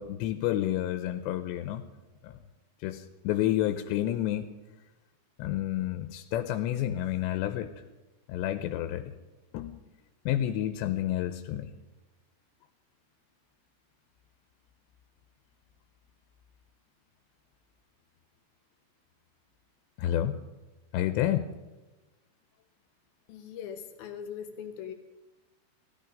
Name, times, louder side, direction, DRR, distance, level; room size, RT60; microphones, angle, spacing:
voice 1, 0.0-1.8 2.2-2.3 2.8-4.5 5.4-7.7 8.3-9.1 9.5-9.8 10.3-11.7 20.0-20.4 20.9-21.5, left 12 dB, 90° left, 9 dB, 2.9 m, -30 dB
voice 2, 23.3-24.9, left 8 dB, 70° left, 7 dB, 2.6 m, -40 dB
16.5 x 14.0 x 5.2 m, 1.1 s
omnidirectional pair, 5.0 m